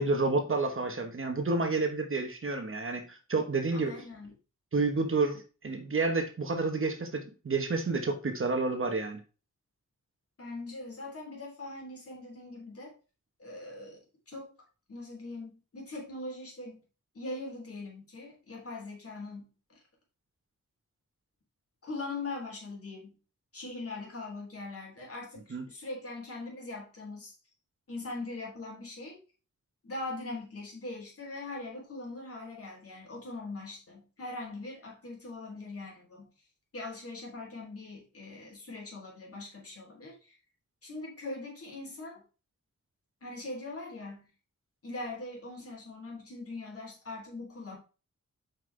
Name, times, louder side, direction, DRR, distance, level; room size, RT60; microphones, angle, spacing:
voice 1, 0.0-3.9 4.7-9.2 25.5-25.7, right 3 dB, 45° right, 5 dB, 1.1 m, -30 dB
voice 2, 3.8-4.3 10.4-12.9 13.4-14.5 14.9-16.8 17.1-19.8 21.8-23.2 23.5-27.3 27.9-29.2 29.8-36.3 36.7-40.4 40.8-42.2 43.2-44.3 44.8-47.8, left 2 dB, 50° left, -1 dB, 3.2 m, -41 dB
7.5 x 5.4 x 3.3 m, 0.34 s
wide cardioid pair, 130°, 30 cm